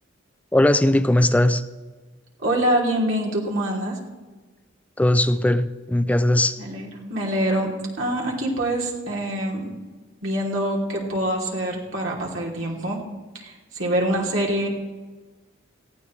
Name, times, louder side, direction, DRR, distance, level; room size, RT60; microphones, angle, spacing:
voice 1, 0.5-1.6 5.0-6.6, left 1 dB, 5° left, 12 dB, 0.4 m, -19 dB
voice 2, 2.4-4.0 6.6-7.7 8.0-9.8 10.2-13.0 13.3-14.7, right 1 dB, 85° right, -1 dB, 3.1 m, -25 dB
18.0 x 15.5 x 3.2 m, 1.3 s
head